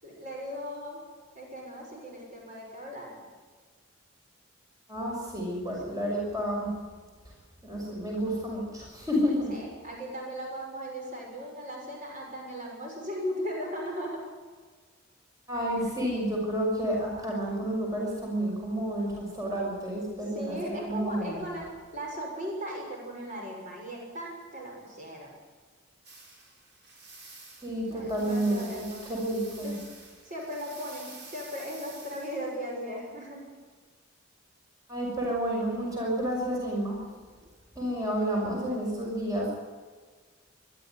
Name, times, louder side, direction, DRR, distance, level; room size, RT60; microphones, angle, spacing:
voice 1, 0.0-1.0 1.3-3.2 9.5-14.2 20.3-21.7 21.9-25.3 27.9-29.1 29.6-29.8 30.2-33.4, equal, 40° right, -1 dB, 6.6 m, -37 dB
voice 2, 4.9-6.7 7.6-9.6 15.5-20.6 20.8-21.5 27.6-29.8 34.9-37.0 37.7-39.5, equal, 20° right, -3 dB, 6.3 m, -30 dB
sound 1, 26.0-32.8, right 3 dB, 55° right, 6.1 m, -49 dB
23.0 x 12.5 x 9.6 m, 1.5 s
head